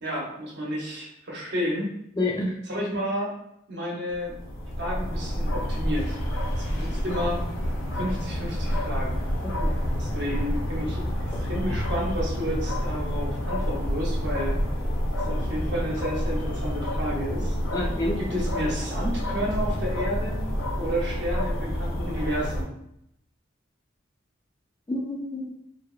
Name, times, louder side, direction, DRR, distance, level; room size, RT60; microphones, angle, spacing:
voice 1, 0.0-1.9 2.7-3.3 3.7-4.3 4.8-6.2 6.6-7.4 7.9-9.2 10.0-11.0 11.4-14.5 15.2-17.6 18.2-20.4 20.8-22.7, equal, 55° right, -3 dB, 0.7 m, -31 dB
voice 2, 2.2-2.6 9.6-9.7 17.7-18.4 24.9-25.5, left 2 dB, 20° left, -2 dB, 0.3 m, -28 dB
sound 1, 4.1-22.6, equal, 75° left, 0.5 m, -28 dB
2.7 x 2.0 x 2.3 m, 0.76 s
head